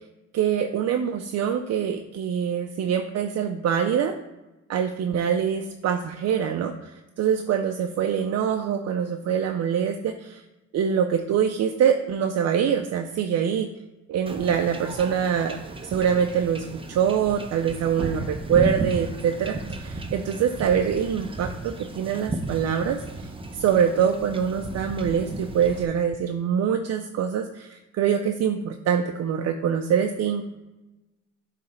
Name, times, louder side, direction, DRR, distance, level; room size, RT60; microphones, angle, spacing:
voice 1, 0.3-4.1 4.7-6.9 7.2-10.4 10.7-13.7 14.1-30.5, right 8 dB, 60° right, 6 dB, 0.5 m, -24 dB
Wind / Ocean / Boat Water vehicle, 14.3-25.9, right 2 dB, 20° right, 0.7 m, -34 dB
7.6 x 3.3 x 4.2 m, 1.0 s
cardioid pair, 90°, 30 cm